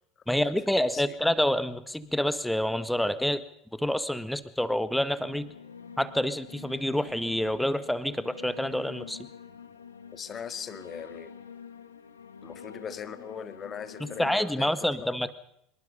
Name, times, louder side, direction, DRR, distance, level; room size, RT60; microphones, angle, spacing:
voice 1, 0.3-3.4 3.7-5.5 6.0-9.2 14.0-15.3, left 1 dB, 5° left, 14 dB, 1.7 m, -28 dB
sound 1, 5.2-14.5, left 7 dB, 80° left, 2.0 m, -47 dB
voice 2, 10.1-11.3 12.4-15.3, left 7 dB, 30° left, 12 dB, 1.9 m, -40 dB
25.5 x 22.5 x 5.5 m, 0.75 s
figure-of-eight pair, 70°, 0 cm